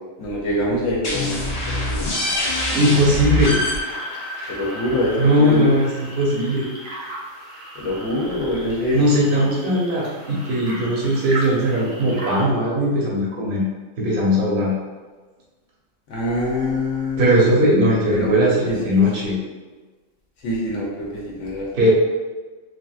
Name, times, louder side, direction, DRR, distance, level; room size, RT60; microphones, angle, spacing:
voice 1, 0.2-1.4 1.7-2.0 4.5-5.7 7.8-9.0 16.1-17.3 18.1-19.3 20.4-21.7, left 1 dB, 75° left, -4 dB, 0.9 m, -25 dB
sound 1, 1.0-6.5, left 1 dB, 45° left, 0.5 m, -26 dB
sound 2, 2.5-12.4, right 1 dB, 80° right, 1.1 m, -37 dB
voice 2, 2.7-3.5 5.2-6.7 8.9-13.6 14.0-14.7 17.2-19.4 21.7-21.9, equal, 50° right, -4 dB, 0.9 m, -19 dB
3.2 x 2.5 x 2.3 m, 1.3 s
omnidirectional pair, 1.3 m